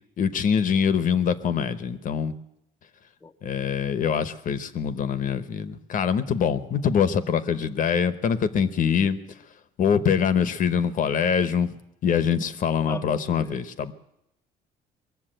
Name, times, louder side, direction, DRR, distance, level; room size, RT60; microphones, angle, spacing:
voice 1, 0.2-2.3 3.4-9.2 9.8-11.7 12.0-13.9, left 7 dB, 50° left, 13 dB, 0.9 m, -24 dB
voice 2, 12.9-13.5, left 3 dB, 15° left, 5 dB, 0.6 m, -37 dB
21.5 x 7.3 x 9.0 m, 0.81 s
cardioid pair, 110°, 17 cm